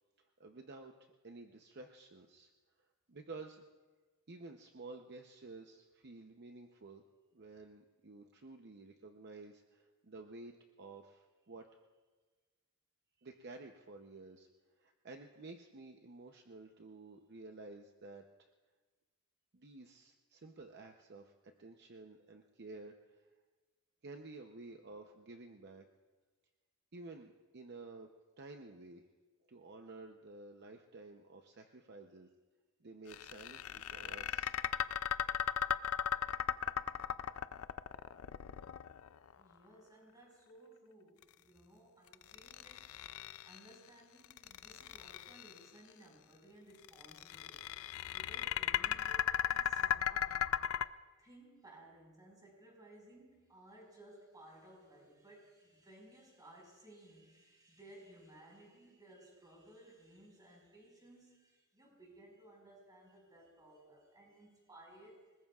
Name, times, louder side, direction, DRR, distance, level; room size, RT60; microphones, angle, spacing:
voice 1, 0.2-2.5 3.1-3.7 4.3-7.0 7.3-11.7 13.2-14.5 14.8-18.5 19.5-23.3 24.0-25.9 26.9-28.1 28.4-29.0 29.5-32.3 32.8-34.6, right 3 dB, 50° right, 4 dB, 0.7 m, -52 dB
sound 1, 33.1-39.3 42.1-43.7 44.2-45.6 46.8-50.8, left 9 dB, 75° left, 0.4 m, -36 dB
voice 2, 39.4-43.0 43.4-47.7 48.1-50.5 51.2-65.4, right 1 dB, 20° right, -1 dB, 5.2 m, -59 dB
28.5 x 20.0 x 2.4 m, 1.3 s
head